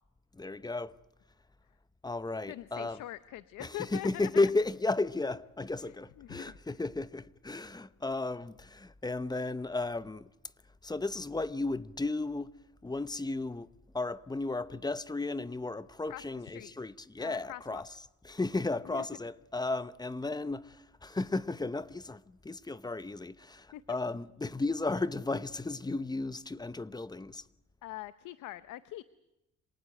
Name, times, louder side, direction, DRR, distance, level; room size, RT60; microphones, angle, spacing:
voice 1, 0.3-0.9 2.0-3.0 3.6-10.3 10.8-12.5 12.8-13.7 13.9-17.9 18.2-27.4, left 3 dB, 15° left, 0.8 m, -34 dB
voice 2, 2.5-4.3 5.8-6.6 16.1-16.7 17.2-17.8 18.9-19.1 23.7-23.8 27.8-29.0, left 15 dB, 85° left, 0.8 m, -43 dB
27.0 x 18.5 x 7.8 m
cardioid pair, 90°, 30 cm